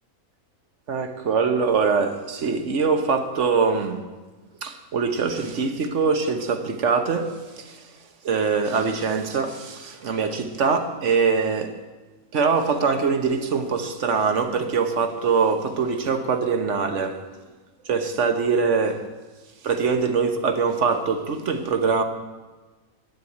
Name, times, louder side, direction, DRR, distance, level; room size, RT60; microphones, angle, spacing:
voice 1, 0.9-4.1 4.6-7.8 8.2-11.7 12.3-17.2 17.9-19.0 19.6-22.0, right 5 dB, 55° right, 1.4 m, -23 dB
11.5 x 9.5 x 8.5 m
omnidirectional pair, 1.5 m